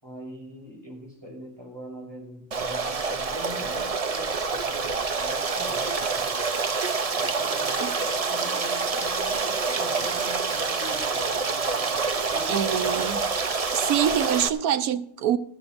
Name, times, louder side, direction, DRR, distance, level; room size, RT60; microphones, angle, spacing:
voice 1, 0.0-6.4 7.2-13.3, equal, 15° right, 6.1 m, -43 dB
Stream, 2.5-14.5, right 4 dB, 35° right, 0.6 m, -27 dB
voice 2, 12.5-13.2 13.7-15.4, right 9 dB, 90° right, 1.3 m, -25 dB
19.0 x 14.0 x 2.6 m
omnidirectional pair, 1.5 m